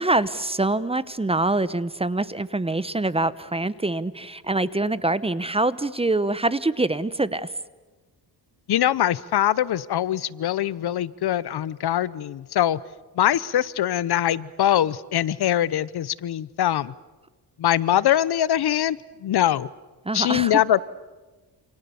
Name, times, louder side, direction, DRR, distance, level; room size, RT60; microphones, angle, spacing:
voice 1, 0.0-7.5 20.0-20.6, right 2 dB, 15° right, 16 dB, 0.9 m, -25 dB
voice 2, 8.7-12.8 13.2-16.9 17.6-19.7 20.1-20.8, left 11 dB, 65° left, 19 dB, 0.9 m, -23 dB
28.5 x 28.0 x 7.1 m, 1.2 s
cardioid pair, 115°, 42 cm